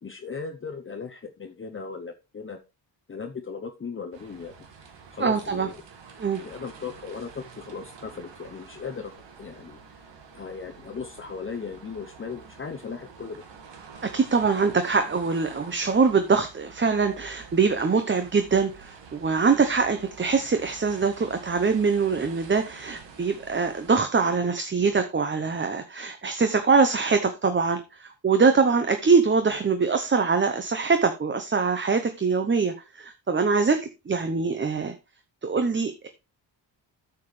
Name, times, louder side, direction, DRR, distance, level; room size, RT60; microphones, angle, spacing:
voice 1, 0.0-2.6 3.1-4.6 5.1-5.8 6.4-9.1 9.4-10.0 10.3-13.4, left 5 dB, 30° left, 4 dB, 0.7 m, -37 dB
sound 1, 4.1-24.0, right 6 dB, 70° right, 1.9 m, -48 dB
voice 2, 5.2-5.7 6.2-6.4 14.0-35.0 35.4-36.1, right 5 dB, 25° right, 7 dB, 0.8 m, -23 dB
9.3 x 6.9 x 3.2 m, 0.27 s
cardioid pair, 100°, 44 cm